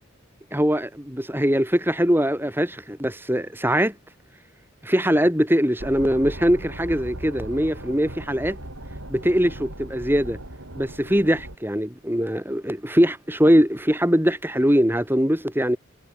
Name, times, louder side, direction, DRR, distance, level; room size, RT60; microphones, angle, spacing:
voice 1, 0.5-3.9 4.8-8.6 9.1-10.4 10.7-15.8, equal, 10° right, 7.5 m, -21 dB
sound 1, 5.8-11.6, right 1 dB, 80° right, 7.7 m, -38 dB
head